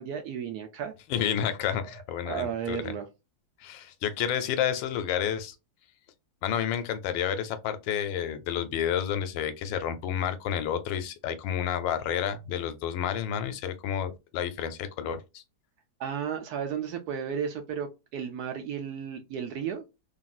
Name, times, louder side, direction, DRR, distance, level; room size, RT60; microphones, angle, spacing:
voice 1, 0.0-0.9 2.2-3.1 16.0-19.8, right 7 dB, 70° right, 0.9 m, -33 dB
voice 2, 1.1-2.9 3.6-5.6 6.4-15.4, left 9 dB, 90° left, 1.3 m, -30 dB
2.9 x 2.6 x 2.3 m
omnidirectional pair, 2.0 m